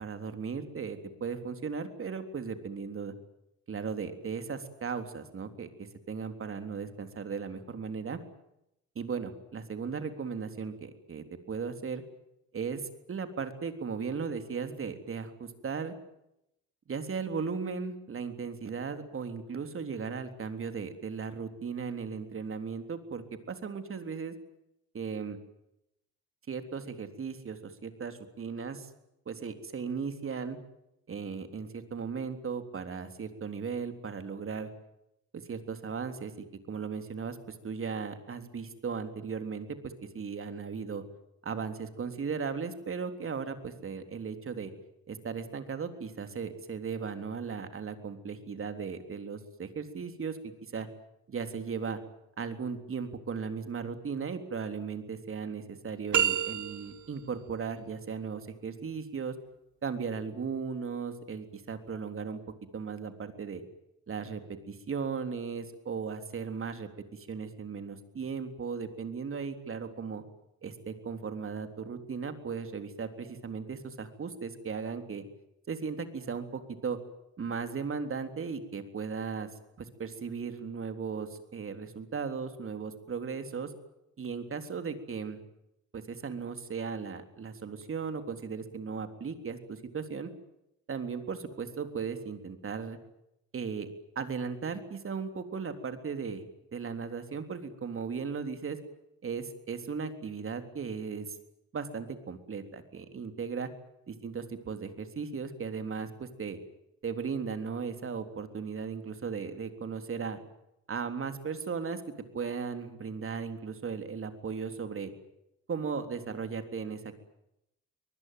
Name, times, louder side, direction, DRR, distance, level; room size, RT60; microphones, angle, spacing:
voice 1, 0.0-3.1 3.7-8.2 9.0-12.0 12.5-15.9 16.9-24.3 24.9-25.4 26.5-28.9 29.3-30.6 31.1-34.7 35.3-36.3 36.7-41.0 41.4-44.7 45.1-50.9 51.3-52.0 52.4-59.4 59.8-62.4 62.7-63.6 64.1-70.2 70.6-75.2 75.7-77.0 77.4-79.5 79.8-83.7 84.2-85.4 85.9-90.3 90.9-93.0 93.5-93.9 94.2-96.4 96.7-98.8 99.2-101.4 101.7-103.7 104.1-106.6 107.0-110.4 110.9-112.0 112.3-115.1 115.7-117.2, right 5 dB, 45° right, 8 dB, 3.6 m, -37 dB
sound 1, 56.1-57.2, right 9 dB, 75° right, 2.4 m, -28 dB
24.5 x 20.0 x 9.3 m, 0.83 s
cardioid pair, 90°, 30 cm